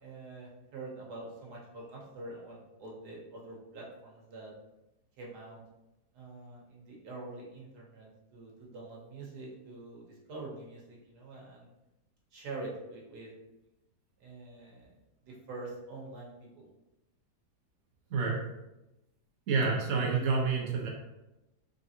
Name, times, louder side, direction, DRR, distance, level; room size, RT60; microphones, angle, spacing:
voice 1, 0.0-4.5 5.2-5.6 6.1-11.7 12.3-13.3 14.2-14.9 15.2-16.7, right 2 dB, 80° right, -3 dB, 1.6 m, -45 dB
voice 2, 19.5-20.9, right 4 dB, 60° right, -2 dB, 1.1 m, -28 dB
3.8 x 3.5 x 2.8 m, 0.95 s
omnidirectional pair, 1.7 m